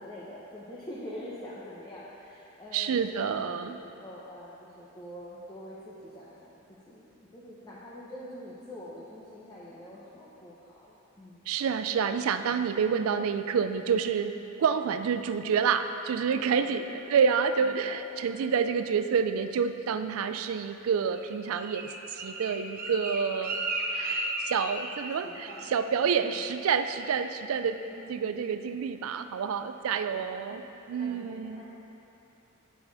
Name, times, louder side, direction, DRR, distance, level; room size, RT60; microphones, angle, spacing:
voice 1, 0.0-3.3 3.7-6.6 6.9-11.5 16.5-16.8 17.6-18.0 18.5-18.6 25.2-25.7 26.2-26.4 27.8-28.4 29.7-30.6 31.0-31.6, equal, 20° left, -8 dB, 0.7 m, -45 dB
voice 2, 2.7-3.8 11.5-14.3 14.6-23.6 23.9-27.8 28.1-30.6 30.9-31.6, right 6 dB, 90° right, 9 dB, 0.4 m, -28 dB
Bird, 21.1-25.2 25.5-25.8 26.1-26.5 26.8-27.2 27.6-27.7, right 2 dB, 45° right, 0.8 m, -35 dB
8.2 x 5.0 x 3.9 m, 2.9 s
head